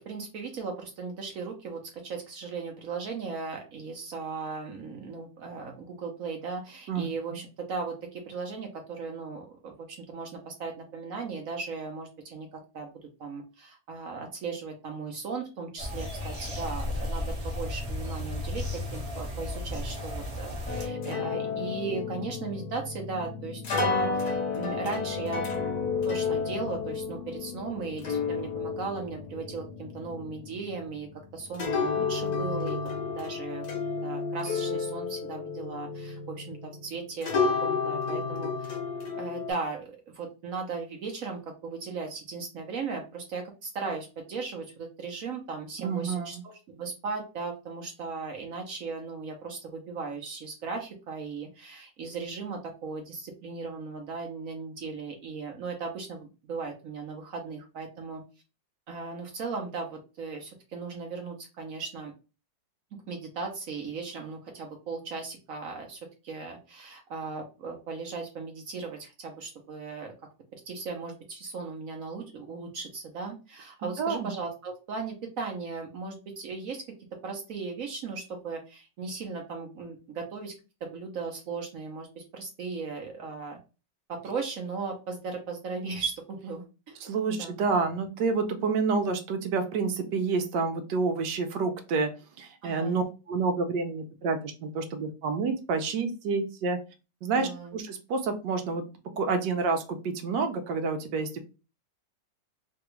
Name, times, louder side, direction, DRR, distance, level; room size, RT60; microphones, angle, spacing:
voice 1, 0.0-12.9 13.2-25.4 26.1-32.8 33.2-33.6 34.0-37.3 37.6-38.8 39.1-58.2 58.9-62.1 63.1-70.1 70.5-76.8 77.2-80.5 80.8-83.6 84.1-87.0 87.3-87.5 92.6-93.0 97.3-97.8, right 4 dB, 60° right, 2 dB, 0.9 m, -37 dB
voice 2, 6.9-7.4 45.8-46.4 74.0-74.3 87.0-92.1 92.4-96.8 97.2-98.8 99.2-101.4, right 4 dB, 75° right, 6 dB, 1.2 m, -29 dB
sound 1, 15.8-20.9, left 1 dB, 30° right, 0.8 m, -34 dB
sound 2, 20.7-36.9 37.2-39.5, left 4 dB, 60° left, 1.2 m, -31 dB
3.3 x 2.3 x 3.0 m, 0.31 s
omnidirectional pair, 1.9 m